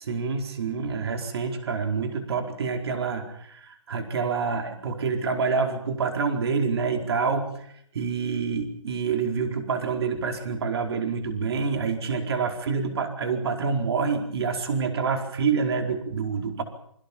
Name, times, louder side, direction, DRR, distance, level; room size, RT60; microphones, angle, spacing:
voice 1, 0.0-7.7 7.9-16.6, right 5 dB, 50° right, 5 dB, 4.7 m, -27 dB
27.5 x 23.0 x 5.5 m, 0.69 s
hypercardioid pair, 165°, 17 cm